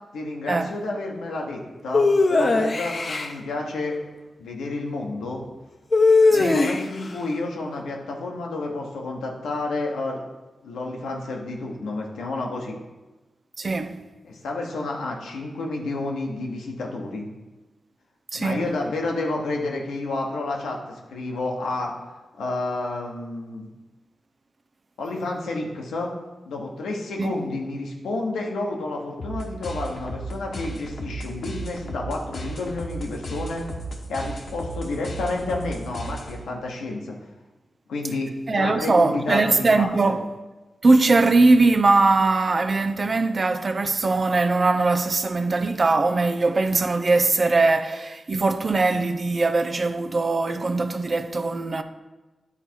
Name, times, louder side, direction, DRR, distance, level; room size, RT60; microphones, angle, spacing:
voice 1, 0.1-4.0 4.4-5.4 6.3-10.2 10.6-12.8 14.2-17.3 18.3-21.9 22.4-23.7 25.0-26.1 26.5-33.6 34.1-37.1 37.9-40.2, left 2 dB, 90° left, 1.1 m, -30 dB
sound 1, 1.9-3.3 5.9-7.1, left 3 dB, 55° left, 0.7 m, -19 dB
voice 2, 6.3-6.6 13.6-14.0 18.3-18.7 27.2-27.3 38.5-40.3 40.8-51.8, right 3 dB, 50° right, 0.6 m, -21 dB
sound 2, 29.2-36.6, right 1 dB, 70° left, 1.1 m, -35 dB
9.8 x 4.0 x 4.5 m
supercardioid pair, 40°, 0 cm